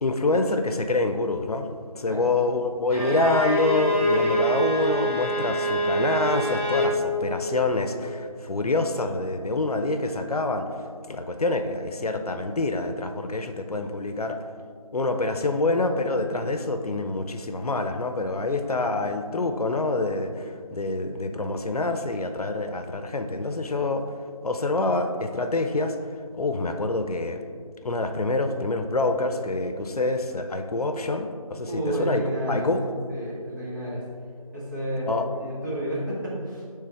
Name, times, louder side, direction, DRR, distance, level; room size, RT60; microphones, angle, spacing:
voice 1, 0.0-1.7 2.0-10.7 11.1-14.4 14.9-24.0 24.4-26.0 26.3-27.4 27.8-32.9 35.1-35.3, left 2 dB, 85° left, 7 dB, 0.6 m, -26 dB
Bowed string instrument, 2.9-7.0, right 1 dB, 20° left, 1.0 m, -25 dB
voice 2, 31.7-32.7 33.1-34.0 34.5-35.1 35.3-36.6, right 1 dB, 30° right, -8 dB, 1.5 m, -30 dB
9.9 x 3.4 x 3.4 m, 2.2 s
figure-of-eight pair, 170°, 19 cm